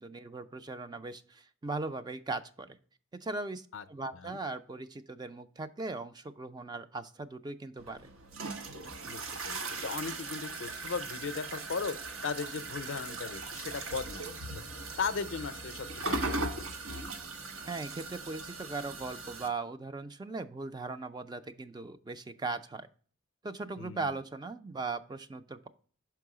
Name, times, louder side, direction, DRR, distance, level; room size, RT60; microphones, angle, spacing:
voice 1, 0.0-2.8 3.2-8.1 17.6-22.9 23.4-25.7, right 3 dB, 20° right, 9 dB, 0.4 m, -39 dB
sound 1, 7.8-19.5, right 2 dB, 80° right, 1.0 m, -39 dB
voice 2, 9.1-12.0 12.2-14.4 15.0-16.5 16.9-17.1 23.8-24.1, left 5 dB, 65° left, 13 dB, 0.5 m, -37 dB
6.1 x 4.6 x 4.8 m, 0.43 s
head